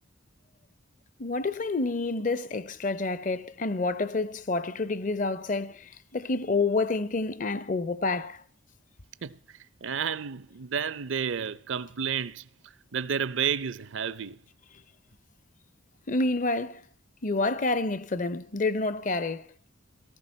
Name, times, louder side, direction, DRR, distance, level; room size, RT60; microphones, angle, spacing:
voice 1, 1.2-8.4 16.1-16.8 17.2-19.5, left 3 dB, 40° left, 0.6 m, -28 dB
voice 2, 9.8-12.5 12.9-14.4, right 7 dB, 70° right, 0.6 m, -31 dB
18.0 x 14.0 x 4.2 m
head